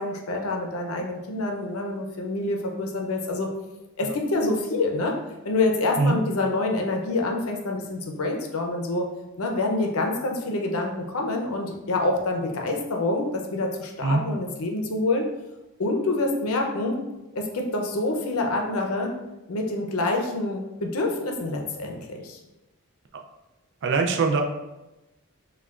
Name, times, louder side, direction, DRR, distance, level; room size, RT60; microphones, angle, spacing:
voice 1, 0.0-3.5 4.0-5.1 5.4-9.1 9.4-15.3 15.8-17.0 17.3-19.2 19.5-22.4, left 2 dB, 65° left, 2 dB, 0.6 m, -26 dB
voice 2, 23.8-24.4, right 4 dB, 55° right, 4 dB, 0.4 m, -22 dB
5.6 x 2.3 x 2.4 m, 1.0 s
head